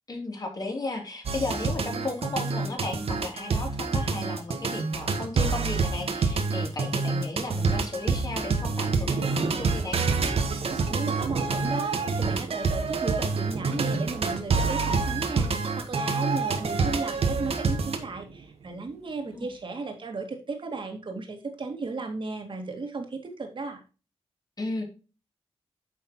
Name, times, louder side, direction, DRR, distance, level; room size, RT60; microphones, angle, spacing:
voice 1, 0.1-10.0 19.3-19.5 24.6-24.8, left 2 dB, 40° left, 1 dB, 3.2 m, -34 dB
sound 1, 1.3-18.0, right 4 dB, 70° right, 1.4 m, -27 dB
Thunder / Rain, 8.2-19.6, right 5 dB, 85° right, 1.0 m, -40 dB
voice 2, 10.9-23.8, right 3 dB, 50° right, 4 dB, 2.2 m, -35 dB
9.8 x 6.4 x 3.0 m, 0.32 s
wide cardioid pair, 105°, 11 cm